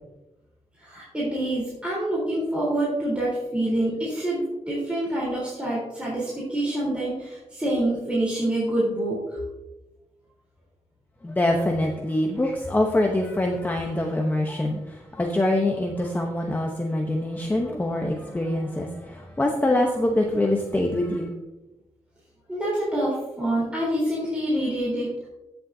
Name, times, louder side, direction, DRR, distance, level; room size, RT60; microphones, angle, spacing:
voice 1, 0.8-9.4 22.5-25.3, right 1 dB, 10° right, -7 dB, 3.7 m, -26 dB
voice 2, 11.2-21.3, left 1 dB, 15° left, 1 dB, 0.9 m, -24 dB
15.5 x 7.0 x 2.7 m, 1.0 s
wide cardioid pair, 135°, 12 cm